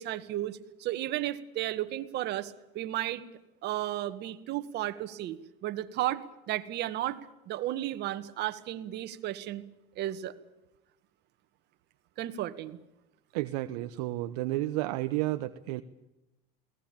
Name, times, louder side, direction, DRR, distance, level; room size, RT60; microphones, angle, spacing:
voice 1, 0.0-3.2 3.6-7.2 7.5-9.7 10.0-10.3 12.2-12.8, right 14 dB, 55° right, 10 dB, 1.9 m, -34 dB
voice 2, 13.3-15.8, right 17 dB, 75° right, 9 dB, 1.0 m, -31 dB
21.5 x 18.5 x 8.9 m, 0.98 s
supercardioid pair, 95°, 21 cm